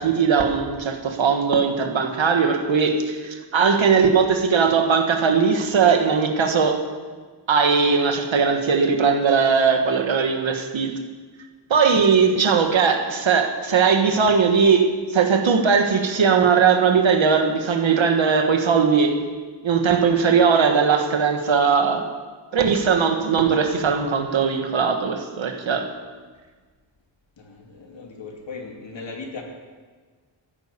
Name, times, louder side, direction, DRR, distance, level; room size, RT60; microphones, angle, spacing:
voice 1, 0.0-6.8 7.5-10.9 11.7-19.2 19.6-22.1 22.5-25.9, right 5 dB, 80° right, 4 dB, 1.6 m, -19 dB
voice 2, 27.4-29.4, left 4 dB, 70° left, 1 dB, 2.6 m, -37 dB
14.5 x 10.5 x 6.8 m, 1.4 s
wide cardioid pair, 145°, 46 cm